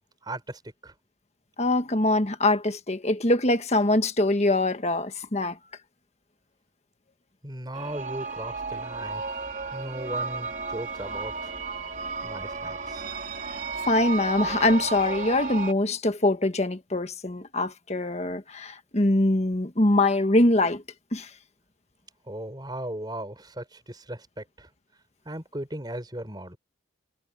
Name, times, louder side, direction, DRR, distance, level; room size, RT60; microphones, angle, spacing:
voice 1, 0.2-0.9 7.4-9.3 9.7-11.5 12.2-13.0 22.3-24.7 25.3-26.6, right 1 dB, 25° right, 5.4 m, -37 dB
voice 2, 1.6-5.6 13.9-20.8 21.1-21.3, left 2 dB, 35° left, 1.5 m, -23 dB
sound 1, 7.7-15.7, right 4 dB, 45° right, 4.0 m, -33 dB
head